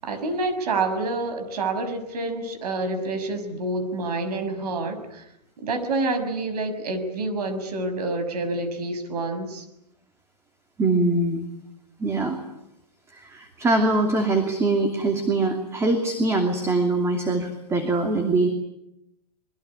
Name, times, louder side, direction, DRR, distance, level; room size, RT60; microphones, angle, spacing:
voice 1, 0.0-5.2 5.6-9.6, right 2 dB, 70° right, 9 dB, 6.3 m, -28 dB
voice 2, 10.8-11.4 12.0-12.4 13.1-18.5, right 2 dB, 15° right, 5 dB, 2.8 m, -23 dB
25.0 x 22.5 x 9.8 m, 0.85 s
hypercardioid pair, 140°, 21 cm